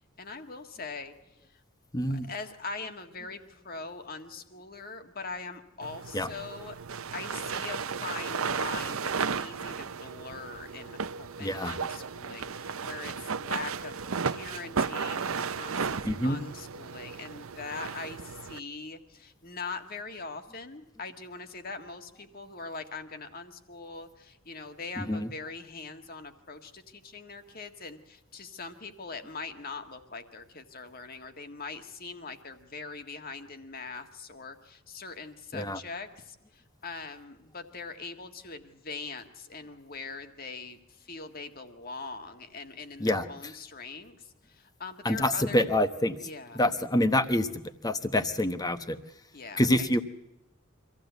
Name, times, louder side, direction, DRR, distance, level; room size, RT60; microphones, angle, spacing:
voice 1, 0.2-1.1 1.4-1.6 2.1-6.8 7.1-45.6 46.2-46.6 49.3-50.0, left 4 dB, 45° left, 7 dB, 1.8 m, -42 dB
voice 2, 1.9-2.3 6.1-6.3 11.4-11.7 16.0-16.4 25.0-25.3 35.5-35.8 43.0-43.2 45.0-46.2 46.5-47.5 47.8-49.0 49.6-50.0, left 1 dB, 20° left, 10 dB, 1.1 m, -26 dB
sound 1, 5.8-18.6, right 5 dB, 75° right, 0.8 m, -34 dB
25.0 x 15.5 x 8.1 m, 0.91 s
head